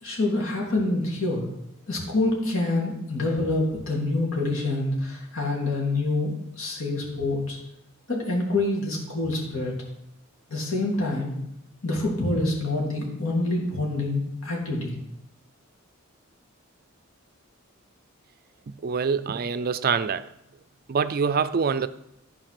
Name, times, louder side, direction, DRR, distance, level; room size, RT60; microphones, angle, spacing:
voice 1, 0.0-1.4 1.9-7.6 8.1-9.7 10.5-11.3 11.8-14.9, left 2 dB, 70° left, 3.2 m, -26 dB
voice 2, 18.8-20.3 20.9-21.9, right 6 dB, 45° right, 0.4 m, -25 dB
13.0 x 4.8 x 6.0 m
head